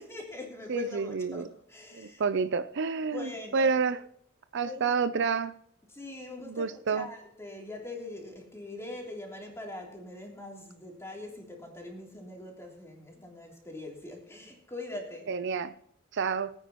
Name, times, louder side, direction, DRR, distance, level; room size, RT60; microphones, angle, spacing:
voice 1, 0.0-2.2 3.0-3.7 4.6-4.9 5.9-15.3, left 2 dB, 15° left, -1 dB, 3.2 m, -42 dB
voice 2, 0.7-1.5 1.9-4.0 4.5-5.5 6.5-7.1 15.3-15.7 16.1-16.5, right 5 dB, 55° right, 13 dB, 0.5 m, -29 dB
22.0 x 9.1 x 3.0 m, 0.70 s
head